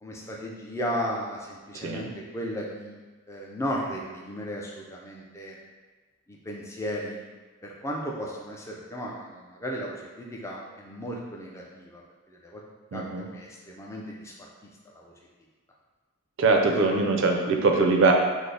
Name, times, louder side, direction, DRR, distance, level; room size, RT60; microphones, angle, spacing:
voice 1, 0.0-3.0 3.3-5.6 6.3-7.2 7.6-12.0 12.3-12.6 12.9-13.0 13.3-14.3 14.6-15.1 16.7-16.8, equal, 15° left, -2 dB, 0.3 m, -35 dB
voice 2, 12.9-13.3 16.4-18.1, right 3 dB, 55° right, 2 dB, 0.4 m, -22 dB
3.3 x 2.0 x 3.8 m, 1.3 s
head